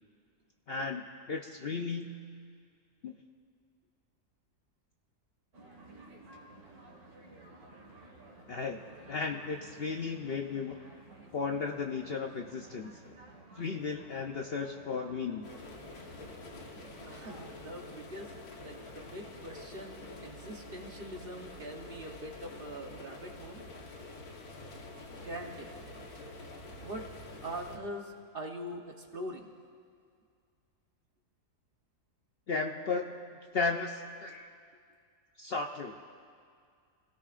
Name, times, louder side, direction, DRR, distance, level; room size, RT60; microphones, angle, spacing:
voice 1, 0.7-2.3 3.0-3.1 8.5-8.8 9.1-10.8 11.3-12.9 13.6-15.5 32.5-34.5 35.4-36.0, left 4 dB, 55° left, 3 dB, 0.7 m, -35 dB
sound 1, 5.5-17.5, right 2 dB, 90° right, 2.2 m, -54 dB
sound 2, 15.4-27.8, left 2 dB, 90° left, 1.8 m, -47 dB
voice 2, 17.1-23.6 25.2-25.8 26.7-27.1 27.4-29.5, right 1 dB, 40° right, 2 dB, 1.1 m, -43 dB
26.5 x 17.0 x 2.5 m, 2.2 s
omnidirectional pair, 1.5 m